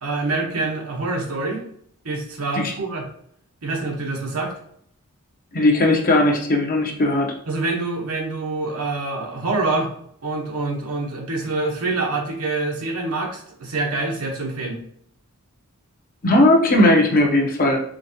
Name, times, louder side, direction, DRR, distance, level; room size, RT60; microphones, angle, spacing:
voice 1, 0.0-1.6 2.0-3.1 3.6-4.5 7.5-9.9 10.2-14.8, right 3 dB, 75° right, 0 dB, 1.2 m, -26 dB
voice 2, 5.5-7.3 16.2-17.8, left 1 dB, 40° left, 2 dB, 0.8 m, -17 dB
5.0 x 3.6 x 2.9 m, 0.67 s
head